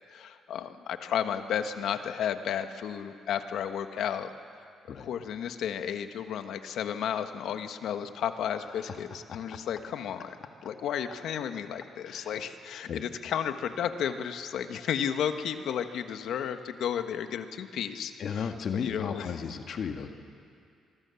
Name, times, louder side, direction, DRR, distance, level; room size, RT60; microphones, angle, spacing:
voice 1, 0.1-4.6 5.0-10.4 10.6-18.5 18.7-19.3, left 8 dB, 75° left, 8 dB, 1.3 m, -33 dB
voice 2, 12.0-12.4 12.9-13.0 18.2-20.1, left 7 dB, 60° left, 5 dB, 1.6 m, -34 dB
25.5 x 24.0 x 7.1 m, 2.4 s
cardioid pair, 90°, 0 cm